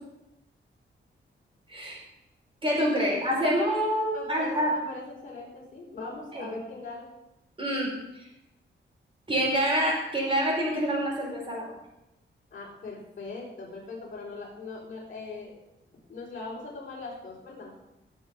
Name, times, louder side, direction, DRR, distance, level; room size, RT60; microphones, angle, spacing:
voice 1, 1.7-2.0 2.6-4.7 6.3-6.5 7.6-7.9 8.2-8.3 9.3-11.7, equal, 25° right, -4 dB, 5.4 m, -26 dB
voice 2, 3.0-7.1 12.5-15.5 16.1-17.7, left 3 dB, 40° left, -5 dB, 4.7 m, -40 dB
16.5 x 7.3 x 6.6 m, 0.90 s
wide cardioid pair, 160°, 20 cm